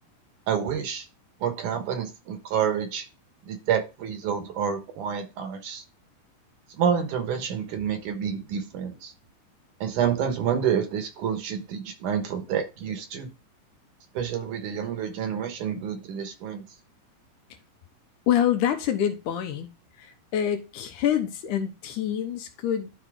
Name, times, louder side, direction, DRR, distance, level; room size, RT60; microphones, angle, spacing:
voice 1, 0.5-1.1 1.4-3.0 3.5-5.8 6.8-9.1 9.8-13.3 14.1-16.6, right 8 dB, 65° right, 6 dB, 2.7 m, -28 dB
voice 2, 18.3-19.7 20.0-22.9, left 10 dB, 75° left, 6 dB, 2.3 m, -26 dB
12.0 x 4.4 x 3.6 m, 0.28 s
omnidirectional pair, 3.9 m